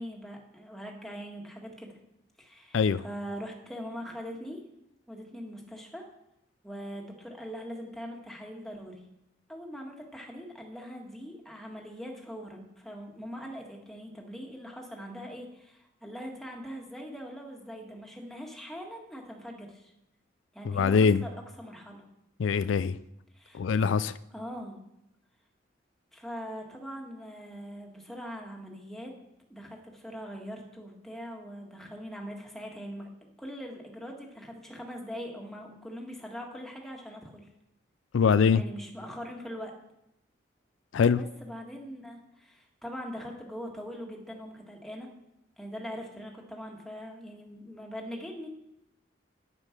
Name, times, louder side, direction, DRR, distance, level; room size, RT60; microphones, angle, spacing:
voice 1, 0.0-2.0 2.4-4.6 5.1-6.0 6.6-9.0 9.5-19.9 20.5-21.3 21.6-22.0 23.3-23.6 24.3-24.8 26.1-29.1 29.5-33.1 33.4-37.5 38.5-39.7 41.1-45.1 45.6-48.5, equal, ahead, 0 dB, 1.8 m, -42 dB
voice 2, 2.7-3.0 20.6-21.2 22.4-23.0 23.5-24.2 38.1-38.6 40.9-41.2, left 6 dB, 85° left, 15 dB, 0.4 m, -23 dB
9.7 x 9.2 x 5.9 m, 0.83 s
head